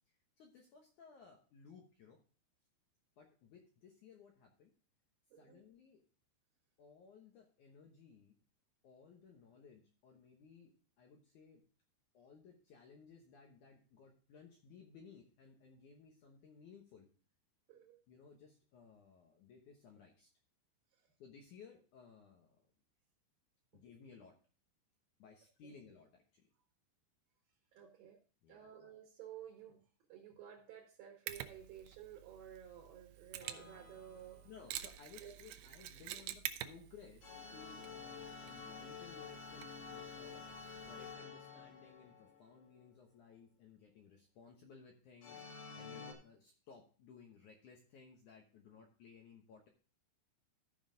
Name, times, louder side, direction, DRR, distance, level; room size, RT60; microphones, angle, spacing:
voice 1, 0.1-2.2 3.2-4.7 5.4-6.0 6.8-8.4 8.8-10.7 11.0-11.6 12.1-17.1 18.1-20.3 21.2-22.7 23.7-24.4 25.2-26.4 28.4-28.7 34.4-40.5 40.9-49.7, left 5 dB, 80° left, 2 dB, 1.7 m, -59 dB
voice 2, 17.7-18.0 23.7-23.8 27.7-28.2 28.5-29.8 30.1-34.4 35.2-35.3, right 10 dB, 65° right, 2 dB, 2.5 m, -53 dB
Mechanisms, 31.3-41.1, right 13 dB, 85° right, 2.3 m, -49 dB
sound 1, 33.4-34.5 37.2-42.9 45.2-46.1, left 5 dB, 55° left, 2.7 m, -50 dB
14.0 x 5.4 x 3.8 m, 0.38 s
omnidirectional pair, 5.2 m